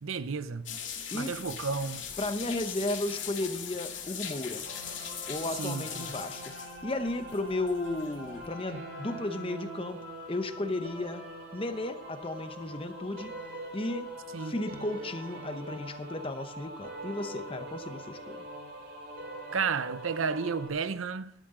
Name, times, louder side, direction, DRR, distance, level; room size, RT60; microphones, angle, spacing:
voice 1, 0.0-0.8 1.1-2.1 5.6-6.1 14.3-14.6 19.5-21.3, right 5 dB, 85° right, 0.7 m, -32 dB
sound 1, 0.7-8.5, left 8 dB, 70° left, 2.3 m, -40 dB
voice 2, 2.2-4.7 5.3-6.5 6.8-10.0 10.3-11.2 11.5-13.3 13.7-14.1 14.4-18.4, left 2 dB, 25° left, 0.8 m, -34 dB
sound 2, 4.7-20.7, right 1 dB, 60° right, 4.8 m, -43 dB
14.5 x 12.0 x 3.8 m
head